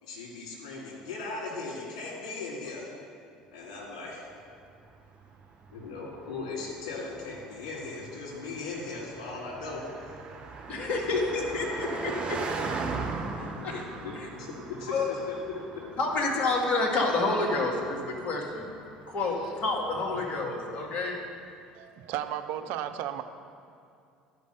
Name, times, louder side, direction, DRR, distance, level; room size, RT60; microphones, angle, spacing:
voice 1, 0.0-2.8 3.5-4.2 5.7-9.9 11.0-11.2 13.5-15.8, left 3 dB, 70° left, -4 dB, 2.7 m, -38 dB
Car passing by, 4.3-20.8, right 4 dB, 30° right, 1.1 m, -40 dB
voice 2, 10.7-12.5 13.4-13.8 14.2-14.3 14.9-15.1 16.0-18.7 19.1-21.2, left 3 dB, 45° left, -1 dB, 1.9 m, -29 dB
voice 3, 21.7-23.2, right 11 dB, 60° right, 9 dB, 0.5 m, -34 dB
11.5 x 5.3 x 6.6 m, 2.4 s
hypercardioid pair, 65°, 4 cm